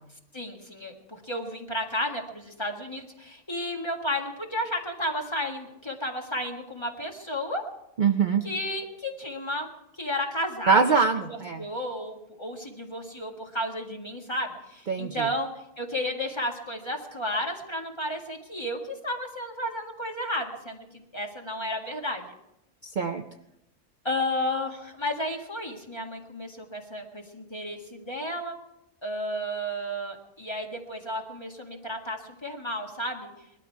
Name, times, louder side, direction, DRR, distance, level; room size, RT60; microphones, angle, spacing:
voice 1, 0.3-7.6 8.4-9.7 10.0-11.0 11.3-15.5 15.8-22.3 24.0-28.5 29.0-33.3, left 1 dB, 20° left, 1 dB, 1.9 m, -32 dB
voice 2, 8.0-8.4 10.7-11.6 14.9-15.3 22.8-23.2, right 5 dB, 45° right, 6 dB, 0.7 m, -23 dB
20.5 x 12.5 x 4.7 m, 0.86 s
omnidirectional pair, 1.3 m